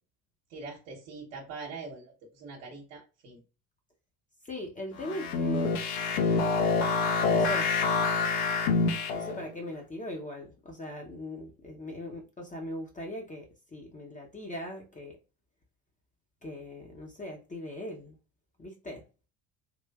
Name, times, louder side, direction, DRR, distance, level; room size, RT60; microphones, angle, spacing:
voice 1, 0.5-3.4, right 4 dB, 60° right, 1.1 m, -43 dB
voice 2, 4.5-5.7 7.2-7.7 9.1-15.2 16.4-18.1 18.6-19.0, left 1 dB, 15° left, 0.6 m, -40 dB
sound 1, 5.0-9.5, left 4 dB, 60° left, 0.8 m, -27 dB
3.4 x 2.5 x 2.2 m
figure-of-eight pair, 60°, 50 cm